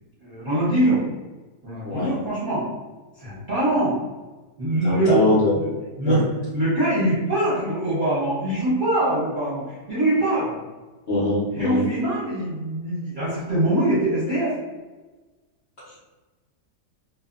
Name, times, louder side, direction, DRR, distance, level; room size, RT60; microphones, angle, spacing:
voice 1, 0.2-1.0 1.6-2.7 3.2-4.0 4.6-5.2 5.5-5.7 6.0-6.2 6.5-10.5 11.5-14.5, right 1 dB, 40° right, -11 dB, 0.9 m, -23 dB
voice 2, 4.8-5.5 6.0-6.2 11.1-11.8 15.8-16.0, left 2 dB, 50° left, -9 dB, 0.7 m, -22 dB
2.6 x 2.3 x 2.5 m, 1.2 s
omnidirectional pair, 1.8 m